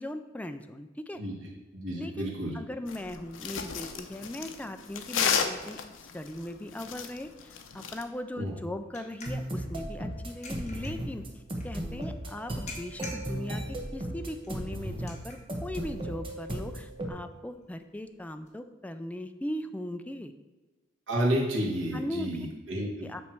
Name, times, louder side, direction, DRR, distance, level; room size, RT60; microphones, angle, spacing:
voice 1, 0.0-1.2 2.0-5.8 6.1-11.2 11.6-20.3 21.9-22.3 23.0-23.2, left 1 dB, 10° left, 8 dB, 0.4 m, -39 dB
voice 2, 1.7-2.5 8.4-8.5 21.1-23.1, equal, 80° right, -3 dB, 1.9 m, -30 dB
sound 1, 2.9-8.0, left 7 dB, 85° left, 0.6 m, -32 dB
sound 2, 7.2-18.5, left 3 dB, 40° left, 1.4 m, -51 dB
sound 3, 9.3-17.1, right 1 dB, 30° right, 1.1 m, -36 dB
8.5 x 3.2 x 6.0 m, 1.2 s
head